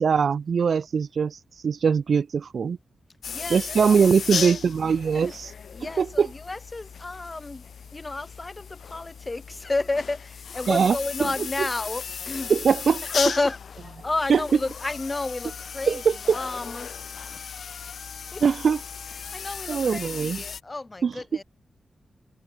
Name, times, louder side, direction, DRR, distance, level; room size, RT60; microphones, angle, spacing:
voice 1, 0.0-1.4 1.6-2.8 3.5-5.5 6.0-6.3 10.7-11.3 11.6-11.7 12.5-13.0 14.3-14.4 15.9-16.4 18.4-18.8 19.7-20.4 21.0-21.1, right 6 dB, 65° right, 1.4 m, -22 dB
sound 1, 3.2-20.6, left 6 dB, 70° left, 3.1 m, -36 dB
voice 2, 3.3-4.6 5.1-5.3 5.7-7.7 7.9-12.5 13.1-13.6 14.0-16.0 16.3-16.9 17.3-17.5 18.3-18.4 19.3-21.4, left 2 dB, 25° left, 3.9 m, -31 dB
wide cardioid pair, 120°, 0 cm